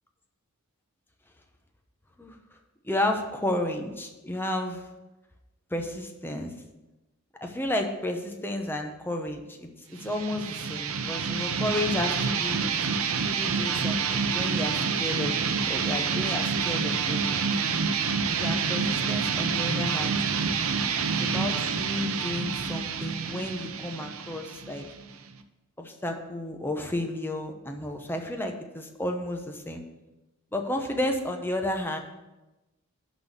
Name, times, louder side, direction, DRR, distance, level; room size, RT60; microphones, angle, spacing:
voice 1, 2.8-4.9 5.7-6.5 7.4-12.7 13.3-15.4 15.7-17.4 18.3-20.2 21.1-24.9 25.8-29.8 30.5-32.0, left 1 dB, 10° left, 3 dB, 0.9 m, -32 dB
sound 1, 10.0-25.4, right 5 dB, 65° right, 0.7 m, -28 dB
11.0 x 4.1 x 6.8 m, 1.0 s
head